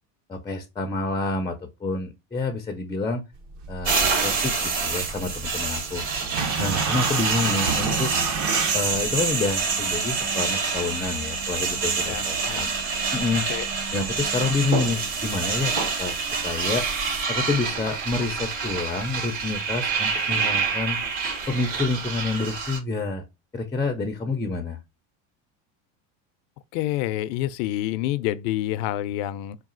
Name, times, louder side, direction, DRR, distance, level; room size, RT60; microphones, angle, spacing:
voice 1, 0.3-3.2 3.7-4.5 4.8-6.0 6.6-8.1 8.7-12.7 13.1-13.5 13.9-16.1 16.4-16.8 17.3-21.0 21.5-23.2 23.5-24.8, left 3 dB, 10° left, 0.4 m, -28 dB
sound 1, 3.3-17.2, right 5 dB, 45° right, 0.9 m, -34 dB
sound 2, 3.8-22.8, right 5 dB, 65° right, 2.5 m, -27 dB
sound 3, 4.3-21.3 22.5-22.6, right 6 dB, 80° right, 1.8 m, -45 dB
voice 2, 12.0-12.6 13.5-13.7 26.7-29.6, left 14 dB, 65° left, 0.5 m, -28 dB
4.0 x 2.4 x 3.6 m
supercardioid pair, 115°, 39 cm